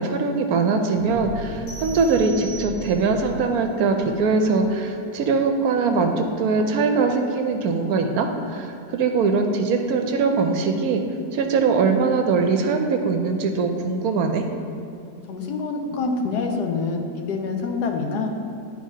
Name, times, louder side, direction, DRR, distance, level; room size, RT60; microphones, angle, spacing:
voice 1, 0.0-11.0 11.3-14.4, right 4 dB, 70° right, 5 dB, 1.0 m, -22 dB
sound 1, 0.9-5.4 5.9-6.1, equal, 65° left, 0.5 m, -38 dB
sound 2, 1.7-3.2, right 3 dB, 50° left, 2.0 m, -40 dB
voice 2, 15.3-18.3, left 4 dB, 80° left, 3 dB, 1.3 m, -26 dB
10.5 x 4.7 x 2.8 m, 2.6 s
omnidirectional pair, 1.7 m